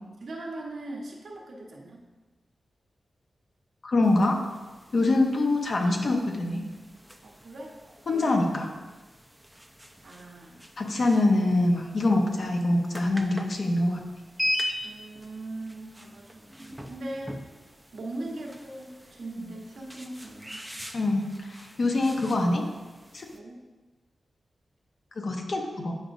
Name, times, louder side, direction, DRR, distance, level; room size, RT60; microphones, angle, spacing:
voice 1, 0.2-2.0 5.0-5.2 7.2-7.7 8.1-8.3 10.0-10.7 14.8-17.4 17.9-20.7 23.3-23.5, right 2 dB, 80° right, -2 dB, 1.1 m, -40 dB
voice 2, 3.8-4.4 4.9-6.6 8.1-8.7 10.8-14.0 20.9-22.6 23.1-23.3 25.2-25.9, left 2 dB, 60° left, 1 dB, 0.9 m, -24 dB
sound 1, 4.0-23.4, equal, 5° right, 0.5 m, -40 dB
8.5 x 5.0 x 2.6 m, 1.2 s
cardioid pair, 75°, 0 cm